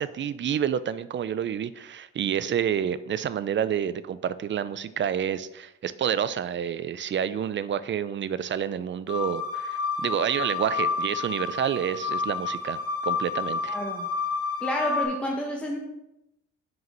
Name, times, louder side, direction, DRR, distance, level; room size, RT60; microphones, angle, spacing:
voice 1, 0.0-13.8, right 9 dB, 40° right, 16 dB, 0.5 m, -29 dB
sound 1, 9.1-15.0, left 4 dB, 50° left, 2.4 m, -30 dB
voice 2, 13.7-14.1 14.6-15.8, equal, 5° left, -1 dB, 1.1 m, -29 dB
6.3 x 4.8 x 5.3 m, 0.89 s
cardioid pair, 90°, 30 cm